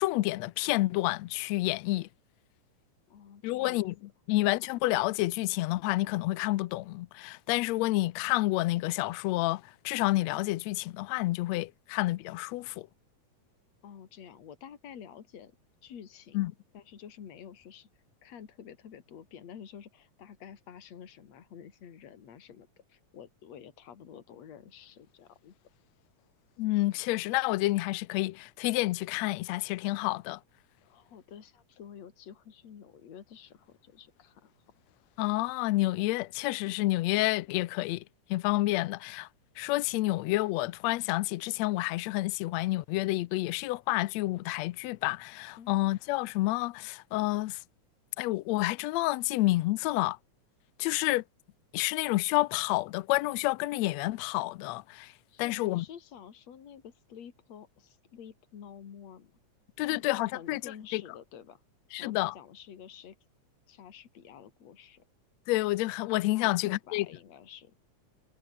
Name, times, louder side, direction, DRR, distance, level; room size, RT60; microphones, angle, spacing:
voice 1, 0.0-2.1 3.4-3.9 4.3-12.9 16.3-16.5 26.6-30.4 35.2-38.0 38.3-39.3 39.6-47.6 48.2-50.2 50.8-51.2 51.7-55.1 55.4-55.8 59.8-60.6 60.9-61.0 61.9-62.3 65.5-67.1, left 19 dB, 80° left, 1.7 m, -29 dB
voice 2, 3.1-3.9 13.8-15.6 15.8-17.9 18.2-25.5 30.8-34.5 45.6-45.7 55.3-59.4 59.8-61.6 62.0-63.2 63.7-65.0 66.4-67.8, left 8 dB, 60° left, 3.5 m, -49 dB
omnidirectional pair, 3.5 m